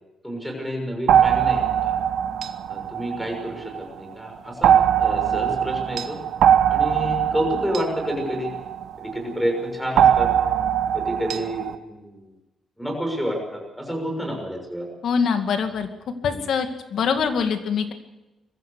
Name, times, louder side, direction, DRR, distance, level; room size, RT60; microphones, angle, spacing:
voice 1, 0.2-1.9 2.7-6.2 6.7-8.5 9.0-10.3 10.9-12.2 12.8-14.9 16.3-16.4, equal, ahead, 2 dB, 6.3 m, -29 dB
sound 1, 1.1-3.9 4.6-9.2 10.0-11.8, right 9 dB, 85° right, 1.1 m, -21 dB
voice 2, 15.0-15.9 16.2-17.9, left 6 dB, 70° left, 6 dB, 2.3 m, -23 dB
22.0 x 15.0 x 8.3 m, 1.0 s
cardioid pair, 125°, 0 cm